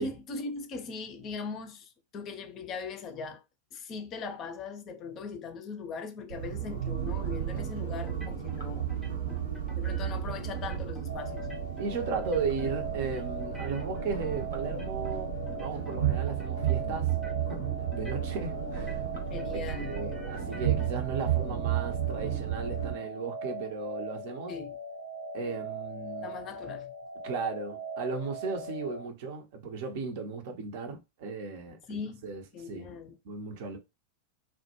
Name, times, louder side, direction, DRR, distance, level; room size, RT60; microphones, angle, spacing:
voice 1, 0.0-3.4 3.7-8.8 9.8-11.5 19.3-19.9 24.5-24.7 26.2-26.9 31.9-32.3 32.5-33.2, left 5 dB, 30° left, 0.4 m, -39 dB
sound 1, 6.3-22.9, right 10 dB, 65° right, 0.9 m, -33 dB
sound 2, 8.1-8.6 8.9-10.2 10.5-11.1 11.4-11.9 12.2-12.7 13.0-15.2 15.5-16.0 16.3-16.8 17.1-17.6 17.9-18.5 18.7-20.9, right 1 dB, 5° right, 0.6 m, -49 dB
sound 3, 11.1-29.1, right 1 dB, 85° left, 0.5 m, -40 dB
voice 2, 11.8-17.1 17.5-17.6 17.9-19.0 19.5-24.6 25.3-26.3 27.2-32.9 33.2-33.8, right 5 dB, 50° right, 0.6 m, -36 dB
2.1 x 2.1 x 3.0 m
figure-of-eight pair, 90°, 0 cm